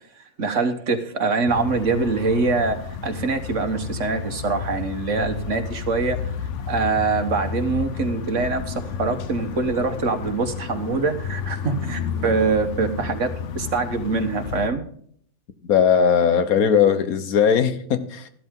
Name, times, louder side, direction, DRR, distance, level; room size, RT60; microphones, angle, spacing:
voice 1, 0.4-2.8 3.0-6.2 6.7-13.3 13.5-14.8, right 4 dB, 60° right, 7 dB, 1.6 m, -24 dB
sound 1, 1.5-14.7, left 7 dB, 60° left, 1.1 m, -31 dB
voice 2, 15.6-18.3, left 7 dB, 85° left, 11 dB, 1.5 m, -19 dB
13.5 x 12.0 x 3.7 m, 0.62 s
omnidirectional pair, 1.5 m